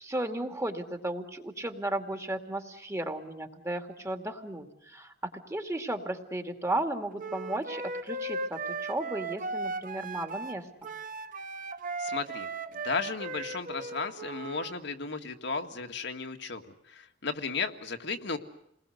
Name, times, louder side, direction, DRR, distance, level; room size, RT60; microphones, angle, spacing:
voice 1, 0.0-5.1 5.5-10.9, right 1 dB, 15° right, 5 dB, 2.5 m, -34 dB
Wind instrument woodwind instrument, 7.2-14.7, right 3 dB, 50° right, 1.4 m, -37 dB
voice 2, 12.0-12.5 12.8-16.6 16.9-18.4, left 4 dB, 70° left, 5 dB, 2.0 m, -34 dB
29.0 x 20.5 x 8.0 m, 0.76 s
head